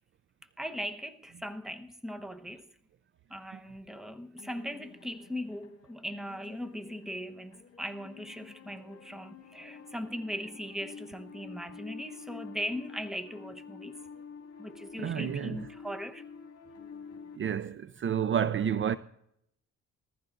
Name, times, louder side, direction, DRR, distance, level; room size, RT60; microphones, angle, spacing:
voice 1, 0.6-2.7 3.3-14.0 14.6-16.2, equal, ahead, 1.0 m, -39 dB
sound 1, 1.3-1.4 4.4-17.4, left 6 dB, 50° left, 2.1 m, -49 dB
voice 2, 15.0-15.6 17.4-19.0, right 8 dB, 40° right, 0.5 m, -30 dB
21.0 x 14.5 x 2.5 m
cardioid pair, 90°, 30 cm